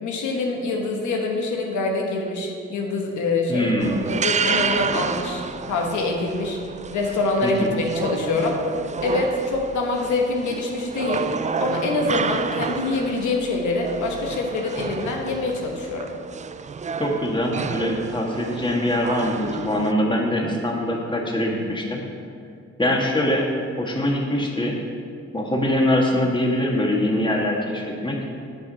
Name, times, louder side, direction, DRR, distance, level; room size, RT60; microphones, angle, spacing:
voice 1, 0.0-3.7 4.1-5.4 5.7-6.6 6.9-8.6 9.0-11.3 11.6-16.1, left 3 dB, 80° left, 1 dB, 1.2 m, -25 dB
voice 2, 3.5-4.0 7.4-7.7 17.0-22.0 22.8-23.5 23.8-24.8 25.3-28.2, left 1 dB, 15° left, -1 dB, 1.8 m, -23 dB
sound 1, 3.8-19.9, right 5 dB, 25° right, 0.4 m, -30 dB
9.3 x 4.9 x 5.6 m, 2.3 s
supercardioid pair, 60°, 29 cm